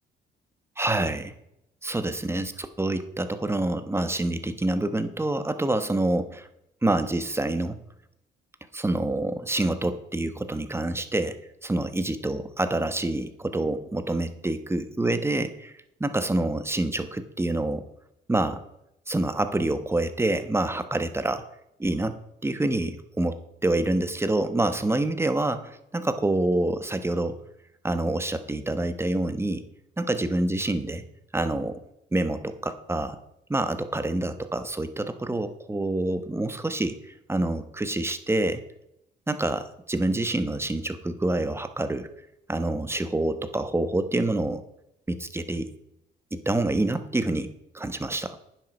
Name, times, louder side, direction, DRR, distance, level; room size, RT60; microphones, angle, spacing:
voice 1, 0.8-1.3 1.8-6.5 6.8-7.8 8.7-11.4 11.6-15.7 16.0-17.8 18.3-18.6 19.1-21.5 21.8-22.2 22.4-27.4 27.8-29.6 30.0-31.0 31.3-31.8 32.1-33.2 33.5-38.6 39.3-42.1 42.5-44.6 45.1-45.7 46.3-47.5 47.7-48.4, right 2 dB, 10° right, 10 dB, 1.1 m, -27 dB
9.6 x 7.8 x 5.9 m, 0.81 s
cardioid pair, 90°, 20 cm